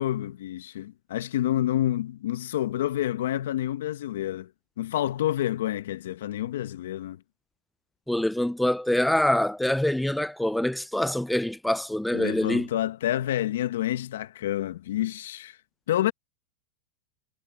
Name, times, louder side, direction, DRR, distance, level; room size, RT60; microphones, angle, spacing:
voice 1, 0.0-4.5 4.8-7.2 12.1-15.6 15.9-16.1, left 13 dB, 75° left, 1.5 m, -28 dB
voice 2, 8.1-12.7, left 1 dB, 5° left, 0.4 m, -25 dB
hypercardioid pair, 115°, 0 cm